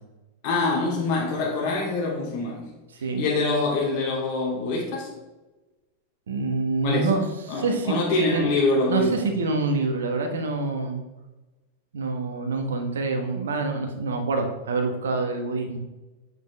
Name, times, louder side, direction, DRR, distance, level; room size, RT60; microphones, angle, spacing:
voice 1, 0.4-2.7 3.2-5.1 6.8-7.1 7.5-9.2, left 3 dB, 45° left, -2 dB, 2.7 m, -25 dB
voice 2, 6.3-7.2 7.5-8.5 8.9-11.0 11.9-15.8, right 3 dB, 65° right, 5 dB, 1.2 m, -26 dB
8.4 x 6.0 x 3.4 m, 1.1 s
figure-of-eight pair, 90°, 0 cm